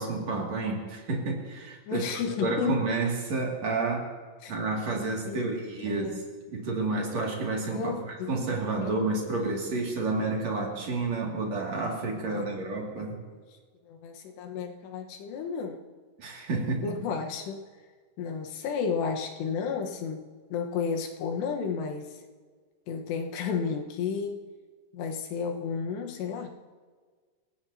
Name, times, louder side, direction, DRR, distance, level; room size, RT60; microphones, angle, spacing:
voice 1, 0.0-2.0 2.4-4.1 4.5-6.2 6.5-8.0 8.3-13.2 16.2-16.8, right 3 dB, 45° right, -1 dB, 3.3 m, -30 dB
voice 2, 1.9-2.9 4.4-4.5 5.3-5.5 5.9-6.2 7.7-8.5 8.8-8.9 12.3-12.6 13.9-15.8 16.8-17.6 18.2-22.2 22.9-24.4 24.9-26.5, left 6 dB, 80° left, 2 dB, 3.5 m, -32 dB
29.0 x 16.5 x 2.9 m, 1.5 s
omnidirectional pair, 4.9 m